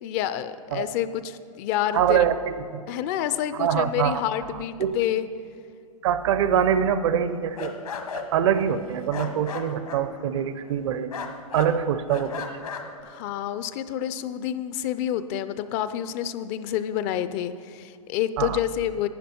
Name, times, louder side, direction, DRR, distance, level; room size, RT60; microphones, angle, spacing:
voice 1, 0.0-2.2 2.9-5.3 13.0-19.1, left 11 dB, 30° left, 13 dB, 0.4 m, -28 dB
voice 2, 1.9-2.8 3.6-4.2 4.8-5.0 6.0-7.7 8.1-11.1 11.5-12.4 18.4-18.6, right 9 dB, 55° right, 12 dB, 0.7 m, -24 dB
sound 1, 7.2-10.8 11.1-11.7 12.1-13.0, left 5 dB, 80° left, 1.3 m, -36 dB
11.5 x 9.4 x 4.3 m, 2.4 s
hypercardioid pair, 125°, 18 cm